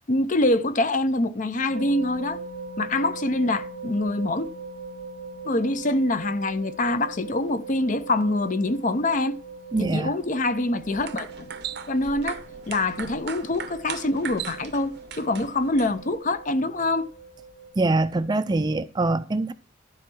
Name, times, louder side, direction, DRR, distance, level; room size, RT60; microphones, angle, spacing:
voice 1, 0.1-2.4 2.8-4.5 5.4-9.4 9.8-11.5 11.9-17.1, left 2 dB, 40° left, 0.6 m, -25 dB
sound 1, 1.7-17.7, right 3 dB, 25° left, 2.8 m, -41 dB
voice 2, 9.7-10.2 17.8-19.5, right 2 dB, 20° right, 0.4 m, -24 dB
sound 2, 10.8-16.2, right 8 dB, 55° right, 0.6 m, -38 dB
12.0 x 4.6 x 6.1 m
head